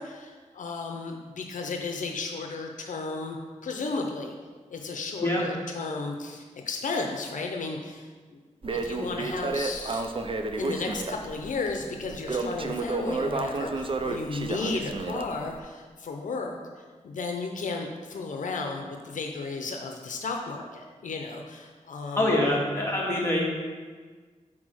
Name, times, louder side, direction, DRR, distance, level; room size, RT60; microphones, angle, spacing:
voice 1, 0.0-3.4 3.6-4.3 4.7-8.4 8.7-10.1 10.6-22.4, left 3 dB, 90° left, 3 dB, 0.6 m, -34 dB
Crackle, 8.6-15.6, right 3 dB, 45° right, 0.5 m, -31 dB
voice 2, 22.2-23.4, left 1 dB, 20° left, -4 dB, 2.0 m, -24 dB
6.1 x 4.4 x 6.3 m, 1.5 s
wide cardioid pair, 80°, 13 cm